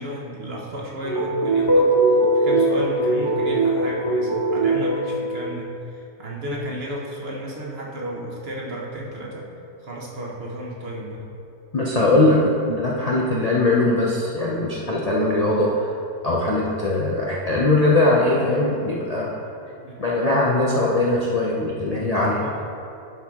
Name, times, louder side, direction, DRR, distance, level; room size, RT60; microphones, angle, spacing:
voice 1, 0.0-9.5 9.8-11.3 19.7-20.2 22.1-22.6, right 1 dB, 45° right, -3 dB, 1.1 m, -33 dB
sound 1, 1.0-5.2, right 2 dB, 15° left, 1.4 m, -20 dB
voice 2, 11.7-12.4 12.6-15.9 16.2-19.3 20.0-22.4, left 2 dB, 80° left, -4 dB, 0.3 m, -20 dB
11.0 x 4.5 x 3.6 m, 2.6 s
omnidirectional pair, 1.7 m